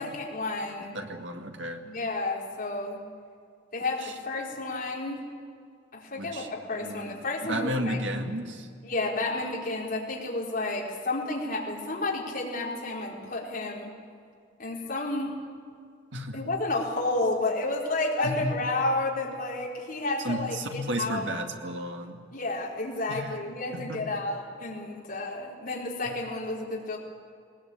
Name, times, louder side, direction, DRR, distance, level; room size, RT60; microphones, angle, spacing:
voice 1, 0.0-0.9 1.8-3.0 3.7-5.3 5.9-8.0 8.8-13.9 14.6-15.4 16.3-21.3 22.3-27.0, left 2 dB, 45° left, -3 dB, 4.5 m, -31 dB
voice 2, 0.9-1.8 4.0-4.1 6.2-7.2 7.5-8.7 16.1-16.4 18.2-18.5 20.2-22.2 23.1-23.3 23.7-24.0, equal, 65° right, 4 dB, 2.1 m, -33 dB
20.5 x 19.5 x 8.7 m, 2.3 s
head